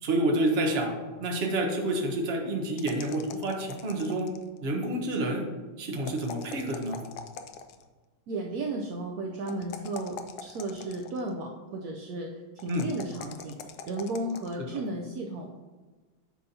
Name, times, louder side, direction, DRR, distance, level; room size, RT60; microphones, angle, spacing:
voice 1, 0.0-4.3 4.6-5.4 5.8-7.0 12.7-12.9, right 1 dB, 45° right, 1 dB, 0.8 m, -28 dB
sound 1, 2.8-4.6 6.0-7.9 9.5-11.3 12.6-14.5, left 7 dB, 80° left, 1.4 m, -43 dB
voice 2, 8.3-13.6 13.9-15.6, right 2 dB, 80° right, 0 dB, 0.8 m, -34 dB
8.9 x 5.6 x 2.7 m, 1.3 s
omnidirectional pair, 2.4 m